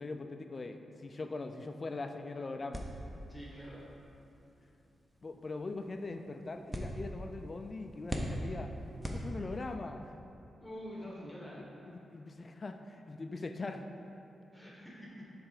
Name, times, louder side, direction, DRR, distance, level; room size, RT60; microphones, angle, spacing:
voice 1, 0.0-2.9 5.2-8.7 9.1-10.1 11.9-13.9, left 3 dB, 40° left, 6 dB, 0.3 m, -41 dB
sound 1, 2.7-9.8, equal, 10° right, 0.7 m, -42 dB
voice 2, 3.3-3.8 10.6-11.6 14.5-15.2, equal, 5° left, -6 dB, 1.3 m, -46 dB
7.2 x 3.3 x 5.0 m, 2.8 s
cardioid pair, 80°, 0 cm